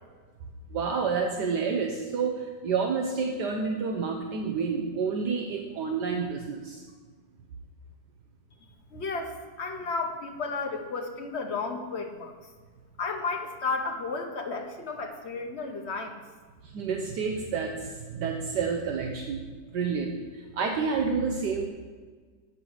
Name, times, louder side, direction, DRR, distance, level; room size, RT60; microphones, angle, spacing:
voice 1, 0.7-6.8 16.6-19.4 19.7-21.7, right 5 dB, 70° right, 2 dB, 1.4 m, -29 dB
voice 2, 8.9-12.3 13.0-16.1, left 4 dB, 50° left, 4 dB, 0.9 m, -33 dB
8.0 x 6.0 x 7.7 m, 1.5 s
omnidirectional pair, 2.0 m